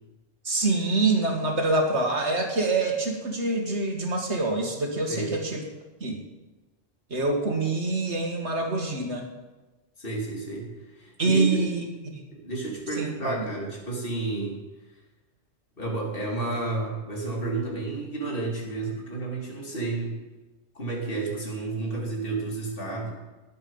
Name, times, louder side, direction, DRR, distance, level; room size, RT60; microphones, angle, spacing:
voice 1, 0.4-5.6 6.0-6.2 7.1-9.3 11.2-11.8 12.1-12.2 13.0-13.4, right 2 dB, 90° right, 2 dB, 2.3 m, -25 dB
voice 2, 10.0-11.6 12.3-14.6 15.8-20.2 20.7-23.1, right 3 dB, 55° left, -2 dB, 2.9 m, -31 dB
19.5 x 8.1 x 5.5 m, 1.1 s
omnidirectional pair, 1.1 m